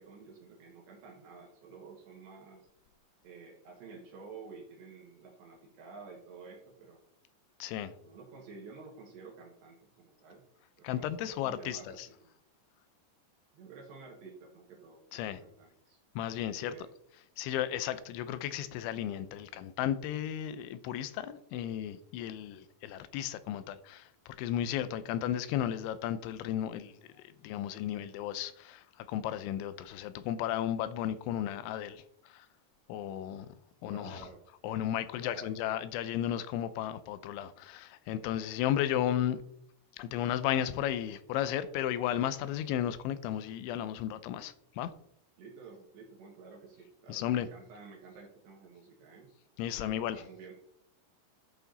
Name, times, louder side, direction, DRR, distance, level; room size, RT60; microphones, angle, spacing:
voice 1, 0.0-2.7 3.2-7.0 8.0-10.4 10.8-12.4 13.5-16.0 16.6-16.9 33.9-34.4 35.2-35.9 45.4-49.3 49.8-50.5, right 4 dB, 70° right, 3.7 m, -51 dB
voice 2, 7.6-7.9 10.8-12.1 15.1-15.4 16.2-16.7 17.4-26.9 27.4-32.5 32.9-33.5 33.8-34.3 34.6-39.4 40.0-44.9 47.1-47.5 49.6-50.2, left 11 dB, 80° left, 3.0 m, -34 dB
12.5 x 8.2 x 4.0 m
omnidirectional pair, 5.5 m